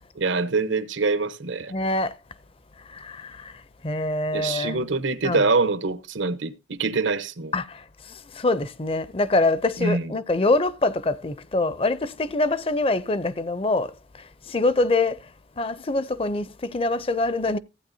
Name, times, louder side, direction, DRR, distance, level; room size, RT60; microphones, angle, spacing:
voice 1, 0.2-1.7 4.3-7.5 9.8-10.2, right 3 dB, 85° right, 1.0 m, -25 dB
voice 2, 1.7-2.1 2.9-3.5 3.8-4.8 5.2-5.4 7.5-7.8 8.3-13.9 14.5-15.2 15.6-17.6, left 2 dB, 30° left, 0.5 m, -24 dB
15.0 x 9.0 x 2.7 m
head